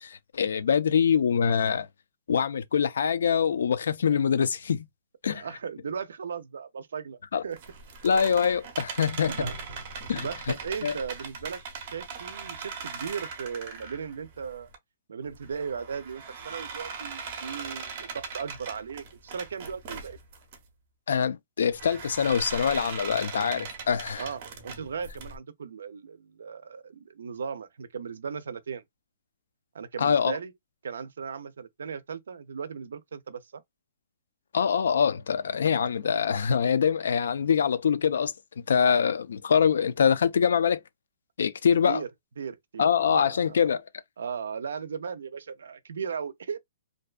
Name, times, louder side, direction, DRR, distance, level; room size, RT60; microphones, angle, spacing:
voice 1, 0.0-1.9 2.3-4.9 5.2-5.4 7.3-7.4 8.0-9.3 10.1-10.3 10.8-10.9 21.1-24.2 30.0-30.4 34.5-38.3 38.7-40.8 41.4-42.0 42.8-43.8, left 7 dB, 70° left, 0.3 m, -24 dB
voice 2, 5.3-7.6 9.3-9.6 10.1-14.7 15.1-20.2 24.1-28.8 29.7-30.5 30.8-33.6 41.8-42.1 42.4-43.7 44.2-46.6, right 6 dB, 80° right, 0.4 m, -37 dB
sound 1, 7.5-14.8 15.2-20.6 21.7-25.4, right 5 dB, 30° right, 0.5 m, -40 dB
2.6 x 2.2 x 2.3 m
hypercardioid pair, 180°, 0 cm